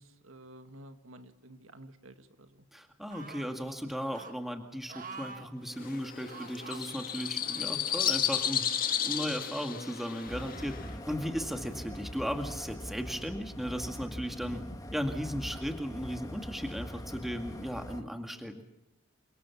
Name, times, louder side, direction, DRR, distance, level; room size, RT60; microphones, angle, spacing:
voice 1, 0.0-2.6 15.3-15.4, right 1 dB, 90° right, 8 dB, 1.9 m, -51 dB
voice 2, 2.7-10.8 11.1-14.6 14.9-18.6, equal, ahead, 5 dB, 2.0 m, -36 dB
sound 1, 3.1-3.6 4.1-4.3 4.9-5.5 6.2-6.8 7.4-8.1 8.8-8.9, right 4 dB, 40° right, 1.8 m, -46 dB
sound 2, 5.8-10.9, left 9 dB, 45° left, 1.9 m, -33 dB
sound 3, 10.3-18.0, equal, 15° left, 1.5 m, -42 dB
28.5 x 25.0 x 7.2 m, 0.91 s
head